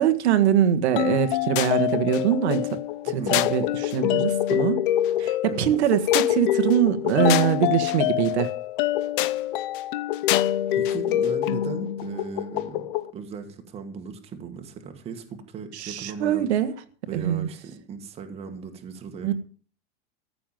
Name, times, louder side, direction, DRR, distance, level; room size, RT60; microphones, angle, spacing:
voice 1, 0.0-2.6 3.0-4.8 5.2-8.5 15.7-16.7 17.1-17.5 19.2-19.3, right 9 dB, 70° right, 1.6 m, -23 dB
sound 1, 1.0-13.1, left 13 dB, 45° left, 0.9 m, -25 dB
voice 2, 3.1-3.5 5.4-5.7 10.7-12.9 13.1-16.5 17.1-19.3, right 6 dB, 15° right, 1.9 m, -37 dB
14.5 x 7.0 x 9.2 m
supercardioid pair, 170°, 35 cm